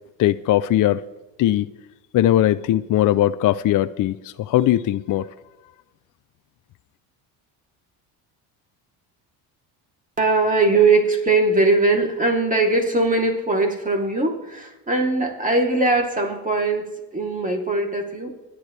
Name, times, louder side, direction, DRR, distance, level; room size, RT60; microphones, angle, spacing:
voice 1, 0.2-1.0 1.4-1.7 2.1-5.3, left 13 dB, 50° left, 0.6 m, -19 dB
voice 2, 10.2-18.3, right 3 dB, 20° right, 3.1 m, -20 dB
26.0 x 11.5 x 3.4 m
cardioid pair, 105°, 42 cm